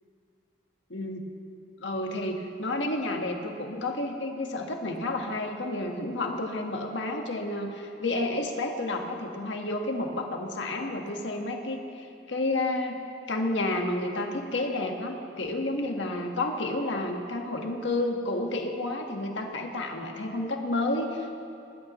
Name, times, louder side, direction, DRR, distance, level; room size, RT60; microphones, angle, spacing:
voice 1, 0.9-1.2 1.8-13.0 13.3-21.3, left 2 dB, 75° left, 2 dB, 1.5 m, -30 dB
19.5 x 19.5 x 3.1 m, 2.6 s
head